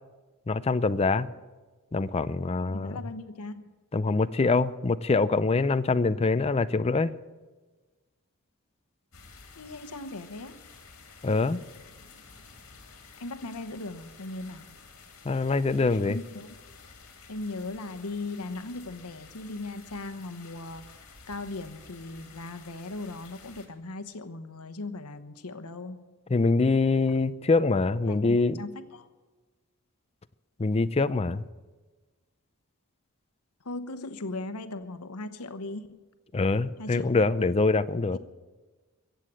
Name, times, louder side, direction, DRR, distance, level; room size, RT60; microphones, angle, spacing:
voice 1, 0.5-1.3 1.9-3.0 3.9-7.1 11.2-11.6 15.2-16.2 26.3-28.6 30.6-31.4 36.3-38.2, left 3 dB, 25° left, 13 dB, 0.4 m, -24 dB
voice 2, 2.7-3.7 9.6-10.6 13.2-14.8 16.1-16.5 17.3-20.9 21.3-26.1 28.1-29.1 33.6-36.0 36.8-37.1 37.4-37.5 38.1-38.2, left 2 dB, 85° left, 11 dB, 1.0 m, -38 dB
sound 1, 9.1-23.7, left 4 dB, 65° left, 2.7 m, -51 dB
23.0 x 8.3 x 7.5 m, 1.3 s
head